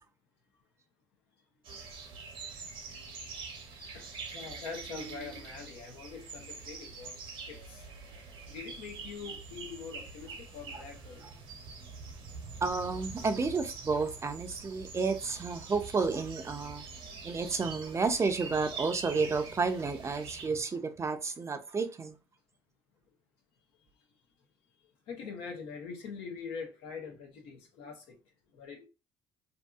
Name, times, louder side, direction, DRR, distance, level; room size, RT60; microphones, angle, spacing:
sound 1, 1.6-20.5, right 4 dB, 70° right, 0.8 m, -45 dB
voice 1, 3.9-7.1 7.5-7.9 8.5-11.3 16.9-17.1 25.1-28.2 28.5-28.9, left 5 dB, 80° left, 0.8 m, -44 dB
voice 2, 5.0-5.4 12.6-16.8 17.2-22.1, right 4 dB, 30° right, 0.5 m, -31 dB
2.6 x 2.6 x 2.3 m
supercardioid pair, 70°, 9 cm